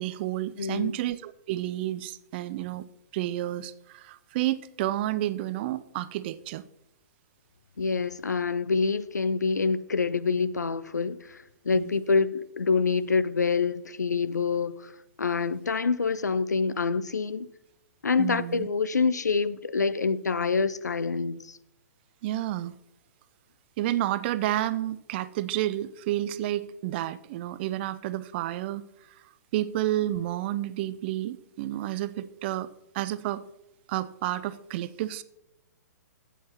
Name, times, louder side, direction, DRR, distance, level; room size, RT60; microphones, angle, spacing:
voice 1, 0.0-2.8 3.1-6.6 11.7-11.9 18.2-18.7 22.2-22.8 23.8-28.8 29.5-32.7 32.9-33.4 33.9-35.2, right 14 dB, 40° right, 0.5 m, -30 dB
voice 2, 0.6-1.0 7.8-14.9 15.2-17.5 18.0-21.6, left 4 dB, 80° left, 0.5 m, -26 dB
13.5 x 8.3 x 2.9 m
figure-of-eight pair, 115°, 9 cm